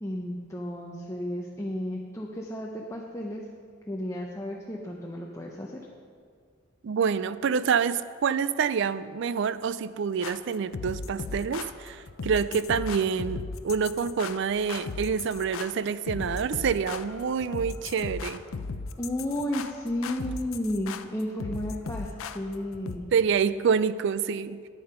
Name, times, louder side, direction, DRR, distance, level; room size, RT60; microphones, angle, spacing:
voice 1, 0.0-3.5 3.9-5.8 19.0-23.1, left 1 dB, 15° left, -1 dB, 0.6 m, -33 dB
voice 2, 6.8-18.4 23.1-24.6, right 6 dB, 60° right, 16 dB, 0.4 m, -27 dB
sound 1, 10.2-23.0, left 4 dB, 85° left, 0.5 m, -37 dB
9.9 x 8.7 x 5.6 m, 2.1 s
head